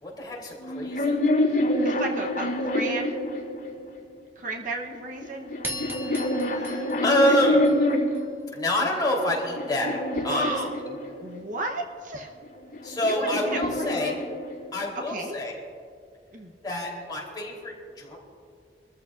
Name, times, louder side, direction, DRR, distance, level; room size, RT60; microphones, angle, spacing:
voice 1, 0.0-1.1 6.5-7.7 8.5-10.0 10.2-10.9 12.8-14.2 14.7-15.5 16.6-18.2, left 1 dB, 25° left, -3 dB, 3.4 m, -27 dB
sound 1, 0.6-4.0 4.9-8.3 9.0-11.4 12.4-14.8, left 1 dB, 50° left, 3.5 m, -27 dB
voice 2, 1.8-3.2 4.4-5.5 10.3-10.8 11.2-12.3 13.1-14.1 14.9-15.3 16.3-16.5, right 1 dB, 50° right, 3 dB, 0.9 m, -33 dB
sound 2, 5.6-8.2, equal, 15° right, 1.4 m, -38 dB
24.0 x 14.0 x 2.5 m, 2.2 s
head